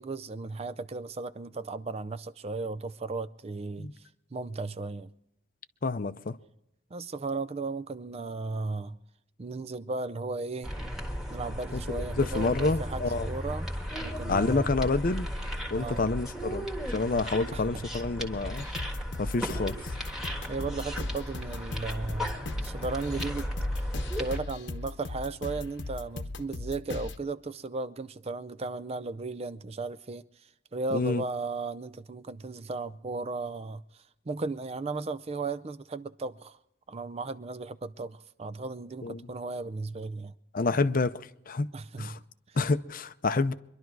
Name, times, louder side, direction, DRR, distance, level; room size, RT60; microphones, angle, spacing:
voice 1, 0.0-3.9 4.3-5.1 6.9-9.0 9.4-10.7 11.3-13.7 14.0-14.7 15.8-16.1 17.5-17.9 20.5-22.4 22.6-23.5 24.2-30.2 30.7-33.8 34.3-36.6 36.9-40.3 41.7-42.6, right 3 dB, 30° right, 0.5 m, -35 dB
voice 2, 5.8-6.4 11.7-13.3 14.3-15.3 15.7-16.7 16.9-18.7 19.2-19.7 30.9-31.2 39.0-39.2 40.5-41.7 42.0-42.2 42.6-43.5, left 3 dB, 45° left, 0.6 m, -28 dB
sound 1, 10.6-24.4, equal, ahead, 1.5 m, -35 dB
sound 2, 18.5-27.2, left 2 dB, 60° left, 1.0 m, -39 dB
24.0 x 11.5 x 4.7 m
head